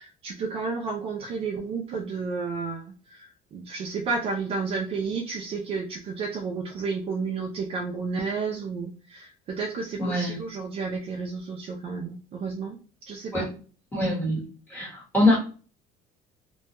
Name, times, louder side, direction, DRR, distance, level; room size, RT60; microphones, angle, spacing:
voice 1, 0.0-12.8 13.1-13.5 14.3-14.4, right 4 dB, 35° right, 1 dB, 0.4 m, -32 dB
voice 2, 10.0-10.4 13.3-13.5 13.9-15.4, left 1 dB, 10° left, -4 dB, 1.2 m, -24 dB
2.2 x 2.2 x 2.8 m, 0.38 s
cardioid pair, 160°, 17 cm